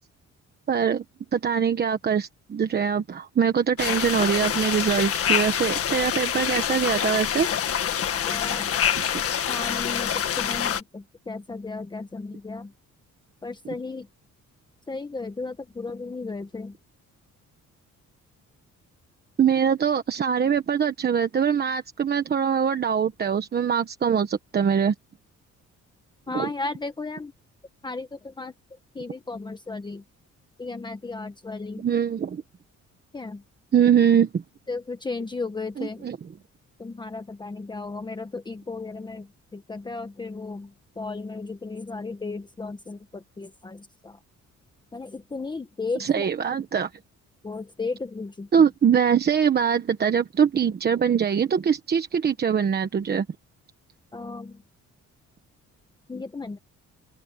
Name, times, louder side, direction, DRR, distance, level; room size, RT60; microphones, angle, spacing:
voice 1, 0.7-1.0 1.3-7.5 9.0-9.2 19.4-24.9 26.3-26.5 31.8-32.4 33.7-34.4 35.8-36.3 45.9-46.9 48.5-53.2, right 7 dB, 30° right, 1.2 m, -23 dB
sound 1, 3.8-10.8, left 9 dB, 50° left, 1.7 m, -26 dB
voice 2, 8.3-8.7 9.5-12.7 13.4-14.1 14.9-16.7 26.3-27.3 27.8-28.5 28.9-30.0 30.6-31.8 33.1-33.4 34.7-36.0 36.8-39.3 39.5-40.7 41.0-44.1 44.9-46.3 47.4-48.5 54.1-54.5 56.1-56.6, left 3 dB, 15° left, 1.2 m, -34 dB
open air
cardioid pair, 175°, 30 cm